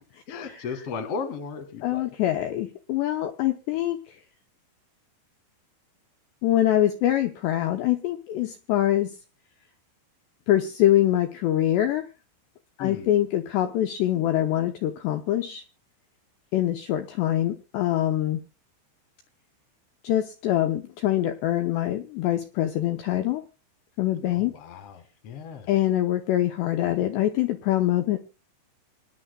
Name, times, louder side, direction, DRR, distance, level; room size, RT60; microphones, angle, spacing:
voice 1, 0.3-2.1 12.8-13.1 24.3-25.7, left 5 dB, 65° left, 6 dB, 1.5 m, -36 dB
voice 2, 1.8-4.2 6.4-9.2 10.5-12.1 12.8-15.6 16.5-18.4 20.0-23.4 24.0-24.5 25.7-28.2, left 13 dB, 80° left, 6 dB, 2.5 m, -24 dB
25.5 x 10.5 x 2.2 m, 0.30 s
omnidirectional pair, 5.8 m